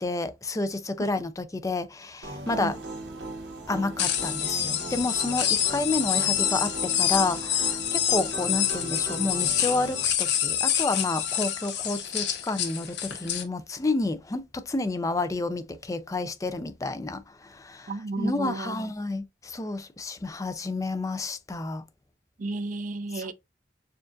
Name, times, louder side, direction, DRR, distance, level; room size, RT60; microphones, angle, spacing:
voice 1, 0.0-2.8 3.7-21.8 23.1-23.3, left 2 dB, 20° left, 0.4 m, -30 dB
sound 1, 2.2-10.0, right 2 dB, 90° right, 1.4 m, -38 dB
sound 2, 4.0-13.4, left 10 dB, 75° left, 0.9 m, -27 dB
voice 2, 17.9-18.8 22.4-23.3, right 3 dB, 45° right, 0.4 m, -32 dB
6.8 x 2.4 x 2.5 m
head